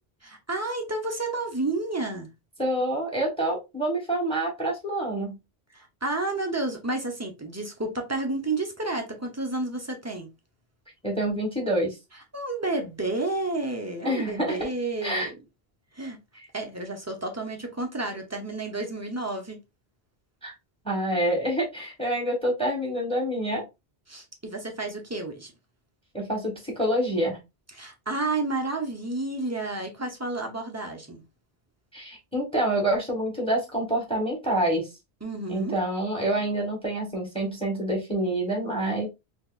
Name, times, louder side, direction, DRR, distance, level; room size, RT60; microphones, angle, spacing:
voice 1, 0.2-2.3 5.7-10.3 12.3-15.4 15.9-16.2 16.5-19.6 24.1-25.5 27.7-31.2 35.2-35.7, right 2 dB, 20° right, 0.6 m, -31 dB
voice 2, 2.6-5.4 11.0-11.9 14.0-14.6 15.0-15.3 20.4-20.5 20.8-23.6 26.1-27.4 31.9-34.9 35.5-39.1, right 1 dB, 5° left, 1.2 m, -27 dB
3.9 x 2.8 x 2.4 m
omnidirectional pair, 1.1 m